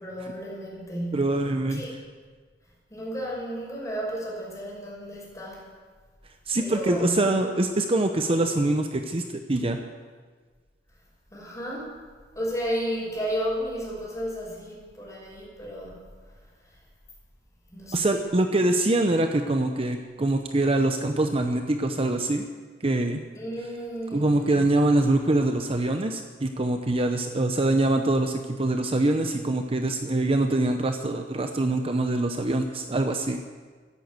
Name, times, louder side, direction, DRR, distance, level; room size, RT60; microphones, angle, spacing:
voice 1, 0.0-1.3 1.7-1.9 2.9-5.7 6.6-7.2 11.3-11.9 12.3-16.0 17.7-18.2 23.3-24.6, equal, 20° left, -4 dB, 5.8 m, -33 dB
voice 2, 1.1-1.8 6.5-9.8 17.9-22.4 22.8-23.2 24.1-33.4, right 2 dB, 30° right, 5 dB, 0.7 m, -24 dB
14.0 x 10.5 x 8.2 m, 1.5 s
head